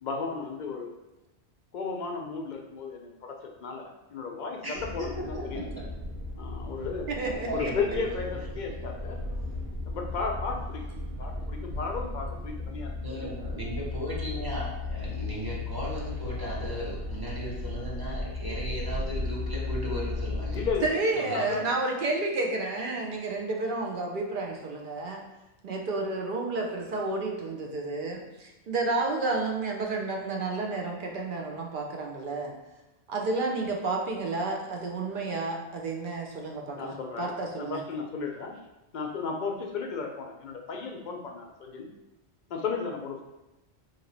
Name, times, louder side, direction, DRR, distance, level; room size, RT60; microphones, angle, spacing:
voice 1, 0.0-1.0 1.7-5.1 5.5-5.6 6.4-7.1 7.5-9.2 9.9-12.9 13.2-13.3 20.5-20.9 21.3-21.7 36.8-38.5 38.9-41.9 42.5-43.3, left 4 dB, 55° left, 2 dB, 0.5 m, -34 dB
voice 2, 4.6-5.9 7.2-8.2 13.0-20.7 21.1-21.4, equal, 25° right, -6 dB, 0.7 m, -36 dB
sound 1, 4.8-20.9, left 2 dB, 85° right, 1.0 m, -35 dB
voice 3, 7.1-7.7 20.8-25.2 25.6-32.5 33.1-37.8, right 3 dB, 60° right, 1 dB, 0.6 m, -31 dB
2.9 x 2.6 x 3.9 m, 0.98 s
omnidirectional pair, 1.1 m